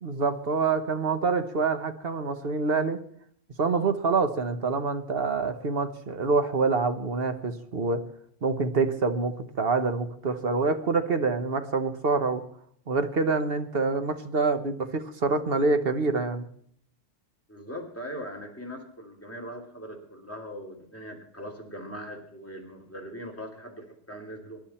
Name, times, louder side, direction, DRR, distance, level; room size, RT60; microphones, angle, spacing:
voice 1, 0.0-3.0 3.6-8.0 8.4-12.4 12.9-16.5, right 4 dB, 50° right, 8 dB, 1.3 m, -26 dB
voice 2, 17.5-24.6, equal, 10° left, 0 dB, 2.9 m, -40 dB
24.0 x 10.5 x 4.3 m, 0.65 s
omnidirectional pair, 1.3 m